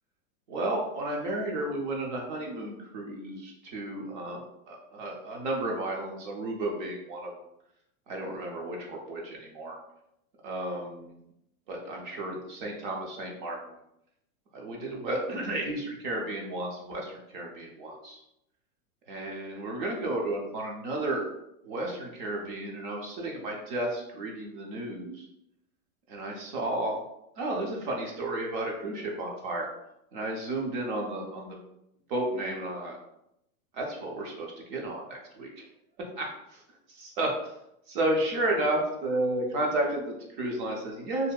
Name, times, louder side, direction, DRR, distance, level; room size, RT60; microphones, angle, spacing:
voice 1, 0.5-7.3 8.1-9.8 10.4-11.2 11.7-13.7 14.5-18.2 19.1-21.3 21.6-25.3 26.1-27.0 27.4-29.7 30.1-31.6 32.1-33.0 33.7-35.5 36.0-36.3 37.2-37.3 37.9-41.3, right 1 dB, 35° right, 0 dB, 0.4 m, -32 dB
2.7 x 2.1 x 2.2 m, 0.81 s
supercardioid pair, 165°, 43 cm